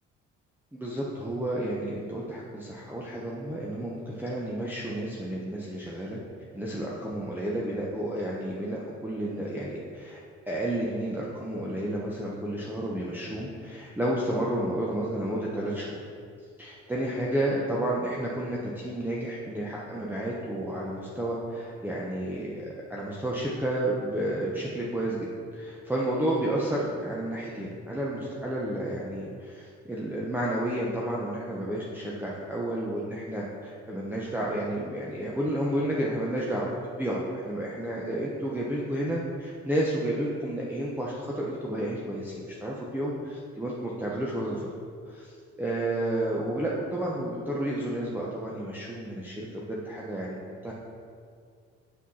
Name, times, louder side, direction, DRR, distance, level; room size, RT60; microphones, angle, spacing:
voice 1, 0.7-6.2 6.5-10.2 10.5-16.0 16.6-43.1 43.6-44.7 45.1-45.3 45.6-50.4 50.6-50.7, right 1 dB, 5° right, -5 dB, 0.9 m, -31 dB
6.1 x 5.6 x 4.2 m, 2.2 s
supercardioid pair, 75°, 29 cm